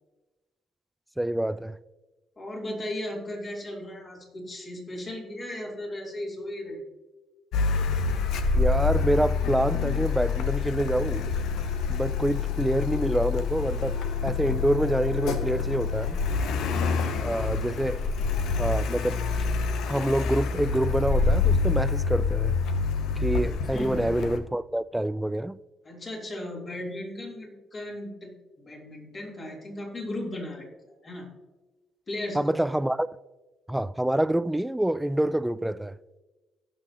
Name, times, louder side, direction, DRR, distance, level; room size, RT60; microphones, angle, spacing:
voice 1, 1.2-1.8 8.5-11.2 11.9-16.2 17.2-18.0 18.6-19.2 19.8-22.6 23.2-25.6 32.3-33.1 33.7-36.0, right 1 dB, 5° right, 0.4 m, -26 dB
voice 2, 2.4-6.8 16.9-18.4 23.7-24.2 25.8-31.3 32.1-32.6, left 1 dB, 40° left, 3.6 m, -37 dB
Car, 7.5-24.4, left 5 dB, 75° left, 0.8 m, -27 dB
18.0 x 6.1 x 3.0 m
supercardioid pair, 60°, 0 cm